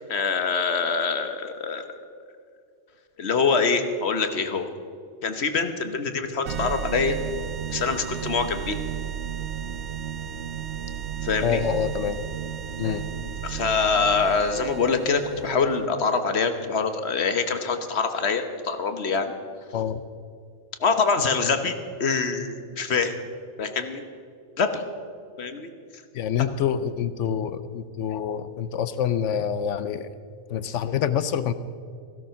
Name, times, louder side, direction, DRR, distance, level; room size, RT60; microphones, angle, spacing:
voice 1, 0.1-1.8 3.2-4.7 5.2-7.1 7.7-8.8 11.2-11.6 13.4-19.3 20.8-23.2 23.6-24.0 24.6-24.8 25.4-25.7, left 5 dB, 60° left, 8 dB, 1.3 m, -24 dB
sound 1, 6.5-15.9, right 9 dB, 70° right, 0.9 m, -33 dB
voice 2, 11.4-12.2 12.8-13.1 19.7-20.0 26.1-30.1 30.5-31.5, left 8 dB, 75° left, 14 dB, 1.0 m, -26 dB
16.0 x 12.5 x 5.8 m, 2.3 s
omnidirectional pair, 1.3 m